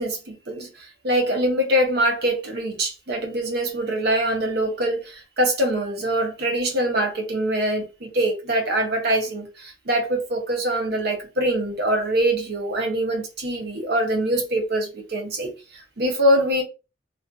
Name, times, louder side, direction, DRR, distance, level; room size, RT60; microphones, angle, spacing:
voice 1, 0.0-16.6, right 1 dB, 55° right, 0.7 m, -24 dB
2.5 x 2.4 x 2.3 m
head